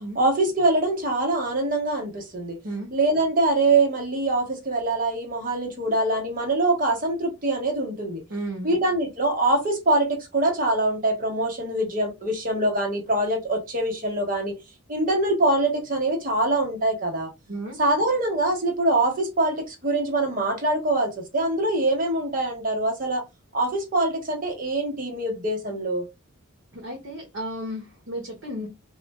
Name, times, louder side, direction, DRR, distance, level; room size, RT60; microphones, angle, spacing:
voice 1, 0.1-2.6 2.9-8.2 8.6-14.5 14.9-17.3 17.8-23.2 23.5-26.1, right 2 dB, 40° right, 0.9 m, -24 dB
voice 2, 8.3-8.7 17.5-17.8 26.7-28.7, right 1 dB, 70° right, 0.8 m, -33 dB
2.4 x 2.1 x 3.1 m
head